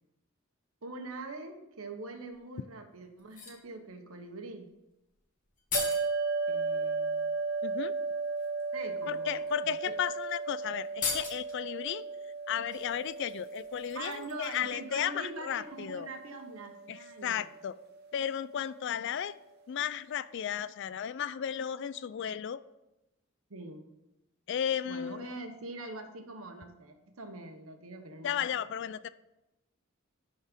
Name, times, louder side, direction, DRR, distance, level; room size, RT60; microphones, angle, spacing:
voice 1, 0.8-4.7 6.5-7.3 8.7-9.9 13.9-17.5 23.5-23.8 24.8-28.8, right 2 dB, 85° right, 5 dB, 1.2 m, -44 dB
sound 1, 2.3-2.4 3.2-3.7 5.1-5.2 5.4-6.1 7.5-7.6 8.2-8.5 9.4-9.5 9.8-10.0 10.2-10.3 10.8-11.6 12.7-14.7 15.0-15.1, left 5 dB, 40° left, 1.4 m, -38 dB
sound 2, 5.7-18.2, right 4 dB, 50° right, 0.9 m, -36 dB
voice 2, 7.6-7.9 9.1-12.0 12.5-16.1 16.9-17.7 18.1-19.4 19.7-22.6 24.5-25.4 28.2-29.1, left 9 dB, 55° left, 15 dB, 0.3 m, -34 dB
11.0 x 4.4 x 5.2 m, 0.95 s
head